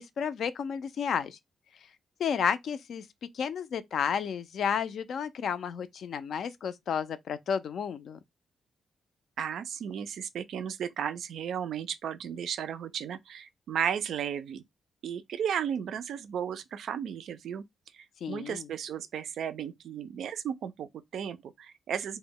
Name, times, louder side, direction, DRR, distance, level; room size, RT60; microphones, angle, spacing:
voice 1, 0.0-1.4 2.2-3.0 3.3-8.2 18.2-18.7, left 7 dB, 65° left, 0.3 m, -32 dB
voice 2, 9.4-14.6 15.0-17.6 17.9-22.2, right 8 dB, 75° right, 0.3 m, -34 dB
2.1 x 2.0 x 3.6 m
cardioid pair, 130°, 0 cm